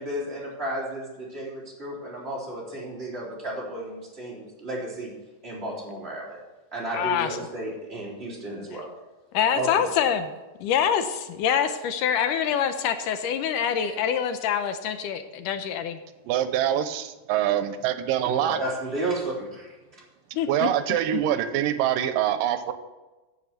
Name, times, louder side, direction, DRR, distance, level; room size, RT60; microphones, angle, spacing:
voice 1, 0.0-5.1 5.4-6.4 6.7-8.9 9.5-9.8 13.8-14.0 18.2-20.0, right 1 dB, 20° right, -5 dB, 3.5 m, -33 dB
voice 2, 6.9-7.3 9.3-10.3 10.6-16.0 20.4-20.7 21.1-21.2, left 8 dB, 75° left, 10 dB, 2.2 m, -25 dB
voice 3, 16.3-18.6 20.5-22.7, right 11 dB, 85° right, 10 dB, 2.4 m, -24 dB
9.8 x 7.6 x 8.0 m, 1.2 s
omnidirectional pair, 3.9 m